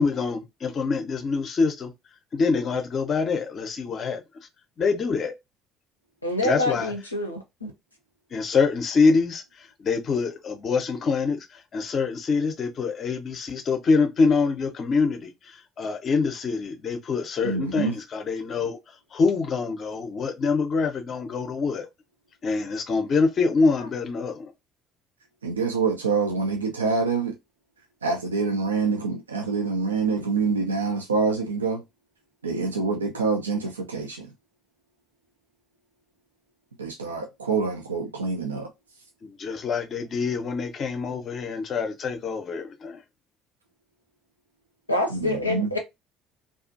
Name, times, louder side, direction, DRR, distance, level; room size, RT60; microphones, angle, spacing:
voice 1, 0.0-1.9 2.3-4.2 4.8-5.3 6.4-6.9 8.3-21.9 22.4-24.5 39.2-43.0, left 4 dB, 40° left, 0.5 m, -25 dB
voice 2, 6.2-7.7 44.9-45.8, left 1 dB, 85° left, 0.5 m, -26 dB
voice 3, 17.4-17.9 25.4-27.4 28.0-31.8 32.4-34.3 36.8-38.7 45.1-45.7, right 4 dB, 80° right, 0.3 m, -26 dB
2.4 x 2.3 x 2.4 m
figure-of-eight pair, 55°, 0 cm